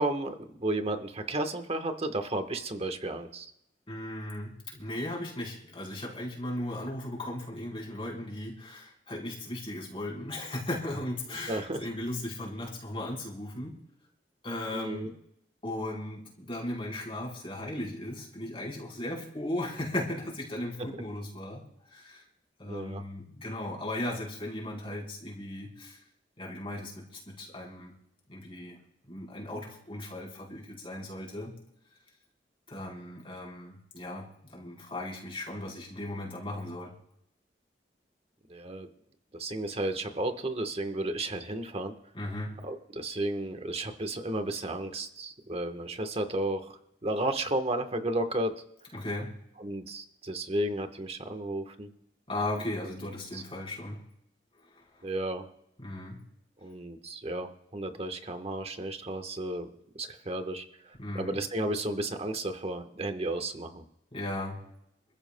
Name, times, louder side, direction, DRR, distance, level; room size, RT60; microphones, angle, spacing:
voice 1, 0.0-3.5 11.5-11.8 14.7-15.1 22.7-23.0 38.5-38.9 39.3-42.0 42.6-48.5 49.6-51.9 53.3-53.4 55.0-55.5 56.6-59.7 59.9-63.8, right 1 dB, 35° right, 7 dB, 1.2 m, -33 dB
voice 2, 3.9-13.8 14.4-15.1 15.6-21.6 21.9-22.2 22.6-26.0 26.4-27.9 28.3-28.8 29.1-31.5 32.7-36.9 42.1-42.5 48.9-49.3 52.3-54.0 54.7-55.0 55.8-56.2 61.0-61.4 64.1-64.6, left 1 dB, 35° left, -2 dB, 4.0 m, -37 dB
27.5 x 14.5 x 2.2 m, 0.79 s
head